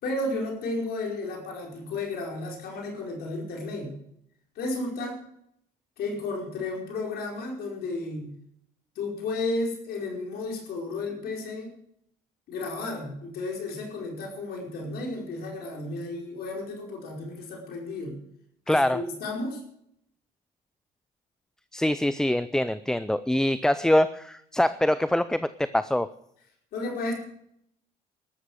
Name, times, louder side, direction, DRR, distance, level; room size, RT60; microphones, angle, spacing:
voice 1, 0.0-3.9 4.5-5.2 6.0-8.3 8.9-11.7 12.5-18.2 18.7-19.6 26.7-27.1, left 2 dB, 70° left, 0 dB, 5.0 m, -33 dB
voice 2, 18.7-19.0 21.7-26.1, left 1 dB, 5° left, 14 dB, 0.5 m, -24 dB
13.0 x 13.0 x 6.5 m, 0.73 s
cardioid pair, 110°, 17 cm